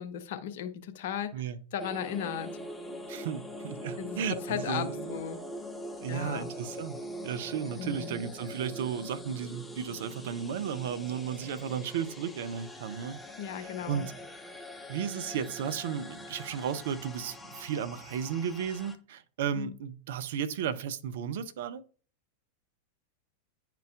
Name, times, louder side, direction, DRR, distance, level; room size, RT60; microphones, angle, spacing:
voice 1, 0.0-1.5 1.7-2.5 4.0-5.4 6.1-6.5 7.8-8.2 13.4-14.1 19.5-19.7, left 9 dB, 55° left, 0.8 m, -36 dB
sound 1, 1.8-19.0, left 1 dB, 5° left, 0.8 m, -43 dB
voice 2, 3.1-5.1 6.0-13.2 13.5-14.1 14.9-21.8, right 8 dB, 55° right, 0.6 m, -34 dB
10.5 x 4.5 x 2.5 m
figure-of-eight pair, 90°, 0 cm